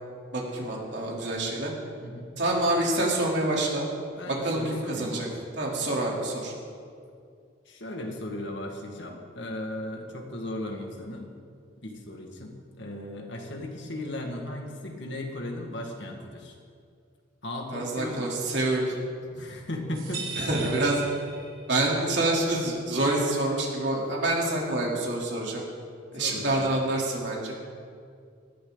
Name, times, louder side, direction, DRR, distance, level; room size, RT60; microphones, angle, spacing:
voice 1, 0.3-1.7 2.4-3.9 4.3-5.3 5.6-6.5 17.7-18.9 19.3-19.4 20.4-20.9 21.7-25.6 26.1-27.6, right 2 dB, 60° right, -3 dB, 3.6 m, -27 dB
voice 2, 2.0-2.3 4.2-5.4 5.7-5.8 7.7-11.3 11.8-16.5 17.4-18.2 19.4-20.7 26.2-26.8, left 1 dB, 65° left, 2 dB, 2.1 m, -36 dB
sound 1, 19.9-21.9, right 4 dB, 85° right, 4.1 m, -38 dB
19.5 x 14.0 x 4.0 m, 2.3 s
head